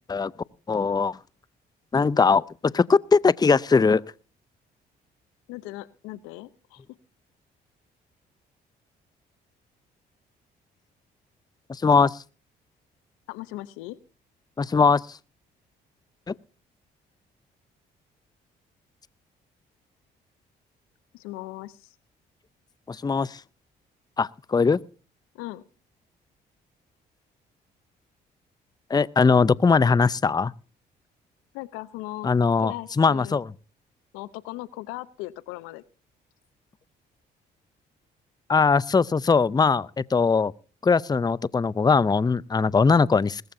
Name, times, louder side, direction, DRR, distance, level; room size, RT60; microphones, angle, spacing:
voice 1, 0.7-1.2 1.9-4.0 11.7-12.2 14.6-15.0 16.3-16.4 22.9-23.4 24.2-24.8 28.9-30.5 32.2-33.4 38.5-40.5 40.8-43.4, left 5 dB, 20° left, 0.5 m, -20 dB
voice 2, 5.5-6.8 13.3-14.0 21.1-21.9 25.3-25.6 31.5-32.3 32.6-33.4 34.1-35.8, left 18 dB, 90° left, 0.8 m, -38 dB
20.0 x 14.5 x 2.7 m
supercardioid pair, 55°, 21 cm